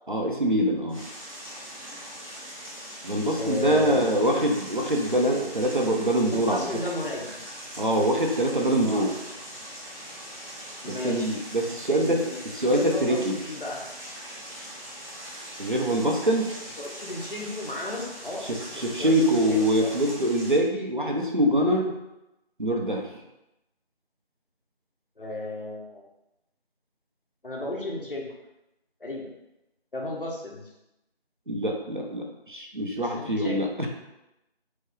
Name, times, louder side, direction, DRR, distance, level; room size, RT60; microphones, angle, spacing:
voice 1, 0.1-1.1 3.0-6.7 7.8-9.1 10.8-12.2 12.5-13.4 15.6-16.5 18.5-21.9 22.6-23.1 31.5-33.9, right 1 dB, 50° right, 1 dB, 0.5 m, -24 dB
sound 1, 0.9-20.6, equal, 30° left, 1.1 m, -41 dB
voice 2, 3.4-4.3 6.3-7.3 8.8-9.0 10.8-11.3 11.9-12.4 12.7-13.8 16.8-18.4 18.9-19.9 25.2-26.0 27.4-28.3 29.0-29.2 29.9-30.7 32.9-33.6, left 2 dB, 55° left, -2 dB, 0.9 m, -34 dB
4.6 x 2.1 x 3.1 m, 0.91 s
figure-of-eight pair, 175°, 32 cm